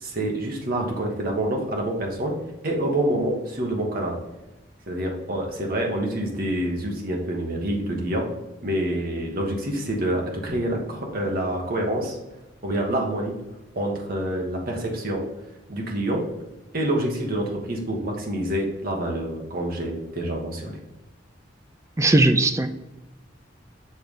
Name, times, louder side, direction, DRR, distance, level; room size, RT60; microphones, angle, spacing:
voice 1, 0.0-2.3 2.6-4.1 4.9-8.3 8.6-12.2 12.6-13.4 13.7-15.2 15.7-16.2 16.7-20.8, right 1 dB, 50° right, 0 dB, 1.4 m, -27 dB
voice 2, 22.0-22.7, right 2 dB, 15° right, 8 dB, 0.4 m, -18 dB
7.0 x 3.4 x 5.4 m, 0.99 s
head